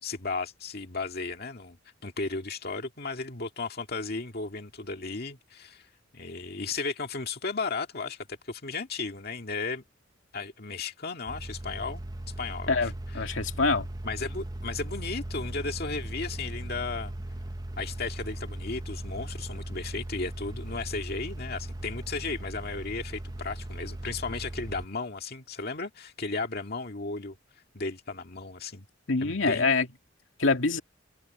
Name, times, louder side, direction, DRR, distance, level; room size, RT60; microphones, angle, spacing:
voice 1, 0.0-1.8 2.0-5.9 6.1-9.8 10.3-12.0 12.4-13.3 14.0-17.1 17.8-27.4 27.7-28.9 29.2-29.7, left 4 dB, 55° left, 2.0 m, -35 dB
sound 1, 11.3-24.9, right 1 dB, 20° right, 0.7 m, -38 dB
voice 2, 12.7-13.9 29.1-29.9 30.4-30.8, left 4 dB, 80° left, 2.2 m, -25 dB
open air
head